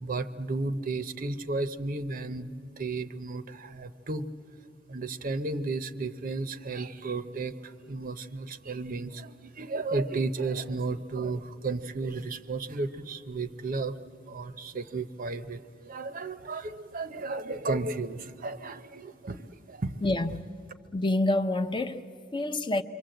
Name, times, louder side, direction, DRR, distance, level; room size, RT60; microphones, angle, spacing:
voice 1, 0.0-4.3 4.9-14.0 14.3-20.0, right 3 dB, 45° right, 0.7 m, -33 dB
voice 2, 20.0-20.5 20.9-22.8, left 2 dB, 25° left, 0.7 m, -28 dB
27.5 x 23.5 x 7.8 m
head